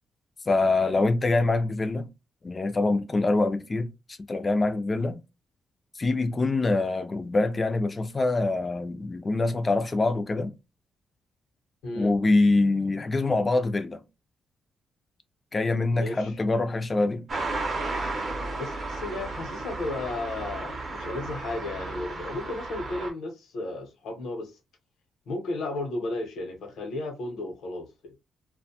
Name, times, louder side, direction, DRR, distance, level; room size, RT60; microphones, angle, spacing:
voice 1, 0.5-2.1 2.4-3.9 4.3-5.2 6.0-10.5 12.0-14.0 15.5-17.3, left 2 dB, 20° left, 0.3 m, -24 dB
voice 2, 11.8-12.2 15.9-16.3 18.6-24.5 25.3-28.1, left 2 dB, 75° left, 0.8 m, -34 dB
sound 1, 17.3-23.1, right 2 dB, 35° right, 0.6 m, -33 dB
2.4 x 2.1 x 2.7 m
cardioid pair, 155°, 0 cm